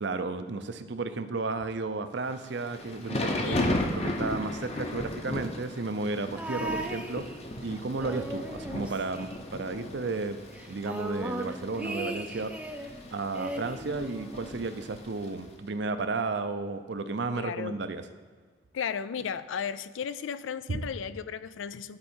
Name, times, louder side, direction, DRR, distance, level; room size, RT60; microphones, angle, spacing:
voice 1, 0.0-3.7 3.9-7.2 7.6-10.4 10.7-12.5 13.1-18.0 20.7-20.8, right 3 dB, 65° right, 10 dB, 0.5 m, -33 dB
Thunder / Rain, 2.4-15.4, left 1 dB, 35° left, 0.8 m, -36 dB
sound 1, 6.4-7.6 8.0-9.9 10.1-10.2 10.5-12.9 13.3-14.6 15.5-15.6, right 1 dB, 5° right, 0.4 m, -38 dB
voice 2, 17.4-17.8 18.7-22.0, left 7 dB, 85° left, 15 dB, 0.4 m, -35 dB
11.0 x 4.7 x 4.4 m, 1.5 s
head